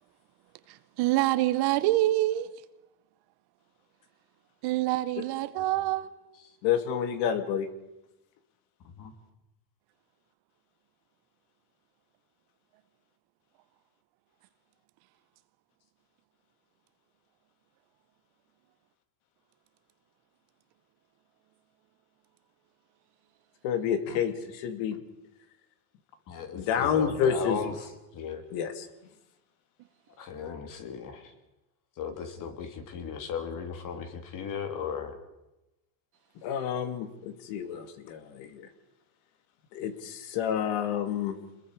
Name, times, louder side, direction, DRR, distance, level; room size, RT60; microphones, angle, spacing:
voice 1, 0.7-2.5 4.6-6.1, right 16 dB, 55° right, 1.3 m, -26 dB
voice 2, 6.6-7.7 23.6-25.0 26.5-27.6 28.5-28.9 36.4-38.7 39.7-41.3, left 8 dB, 60° left, 2.5 m, -29 dB
voice 3, 26.3-28.4 30.2-31.3 32.0-35.2, left 6 dB, 40° left, 3.3 m, -36 dB
27.5 x 21.5 x 5.0 m
supercardioid pair, 125°, 48 cm